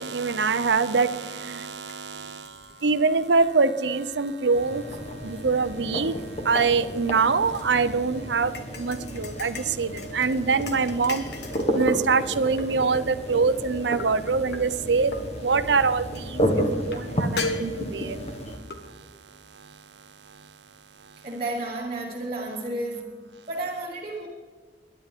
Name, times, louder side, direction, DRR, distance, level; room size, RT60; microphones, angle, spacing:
voice 1, 0.0-4.8 5.2-6.2 6.4-11.3 11.7-18.2, right 4 dB, 80° right, 12 dB, 0.7 m, -24 dB
sound 1, 1.0-1.1 1.5-4.6 4.9-5.4 5.8-7.6 8.5-11.8 12.3-13.0 14.0-14.6 15.1-15.2 15.5-15.7 16.1-16.2 16.9-17.0 17.4-18.2 18.7-18.8, left 3 dB, 70° left, 1.5 m, -37 dB
sound 2, 4.5-18.6, equal, 40° left, 1.7 m, -32 dB
voice 2, 21.2-24.3, right 2 dB, 35° right, -6 dB, 2.3 m, -32 dB
21.5 x 10.5 x 3.6 m, 1.5 s
head